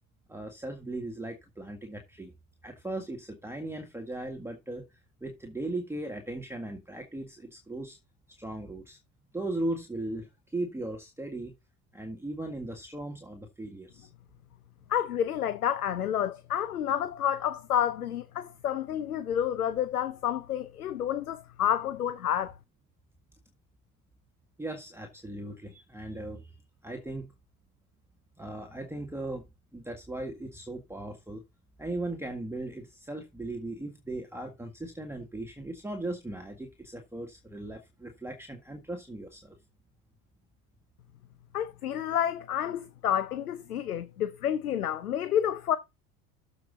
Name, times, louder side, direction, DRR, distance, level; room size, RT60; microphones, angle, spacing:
voice 1, 0.3-2.3 2.6-4.8 5.2-8.0 8.4-9.0 9.3-11.5 11.9-14.1 24.6-26.6 26.8-27.3 28.4-29.5 29.7-31.4 31.8-39.6, right 2 dB, 5° right, 1.7 m, -38 dB
voice 2, 14.9-22.5 41.5-45.8, left 10 dB, 85° left, 0.8 m, -29 dB
13.5 x 5.2 x 4.0 m
hypercardioid pair, 75°, 43 cm